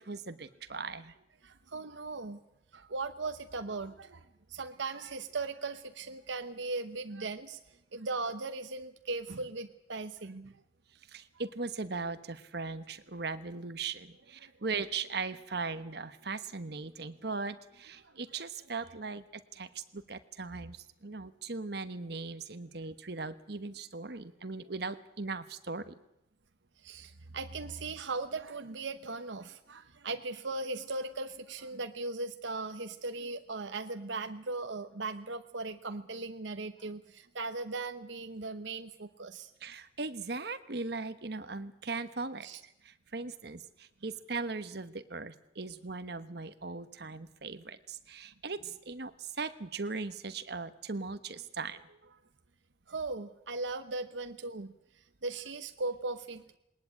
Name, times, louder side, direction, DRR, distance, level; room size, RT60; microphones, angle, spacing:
voice 1, 0.1-1.1 11.1-19.2 19.6-20.8 21.0-25.9 39.6-42.5 43.1-43.6 44.0-48.6 48.9-49.1 49.4-51.8, right 4 dB, 55° right, 11 dB, 1.2 m, -38 dB
voice 2, 1.4-2.4 2.7-4.2 4.5-7.6 7.9-10.5 14.4-14.5 18.0-18.7 24.1-24.2 26.8-39.5 42.4-42.6 52.9-54.7 55.2-56.6, right 3 dB, 75° right, 7 dB, 1.0 m, -38 dB
20.0 x 19.5 x 8.6 m, 0.82 s
head